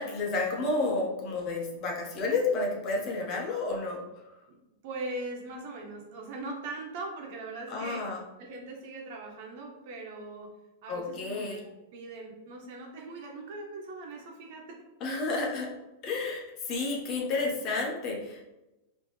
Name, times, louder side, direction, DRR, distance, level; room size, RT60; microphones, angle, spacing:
voice 1, 0.0-4.0 7.7-8.2 10.9-11.6 15.0-15.7 16.0-18.4, left 3 dB, 40° left, -1 dB, 1.3 m, -31 dB
voice 2, 4.8-8.0 8.4-10.5 10.8-11.6 11.9-14.9, right 2 dB, 60° right, 0 dB, 1.3 m, -40 dB
5.1 x 3.2 x 3.3 m, 0.97 s
hypercardioid pair, 125°, 0 cm